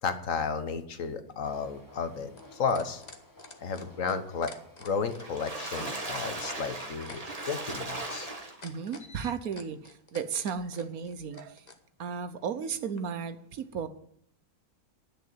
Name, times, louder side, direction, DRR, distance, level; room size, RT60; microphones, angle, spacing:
voice 1, 0.0-3.0 3.6-4.5 4.8-8.3 9.1-9.3, left 5 dB, 60° left, 10 dB, 1.4 m, -33 dB
sound 1, 1.3-11.8 13.0-13.1, left 3 dB, 30° left, 1.3 m, -49 dB
sound 2, 1.4-7.1, left 1 dB, 10° left, 1.9 m, -55 dB
Water / Splash splatter, 5.0-8.9 9.4-9.5 9.9-10.0, right 2 dB, 25° right, 1.8 m, -37 dB
voice 2, 8.6-11.6 12.0-13.9, right 6 dB, 70° right, 11 dB, 1.3 m, -34 dB
11.0 x 6.7 x 9.3 m, 0.68 s
omnidirectional pair, 1.6 m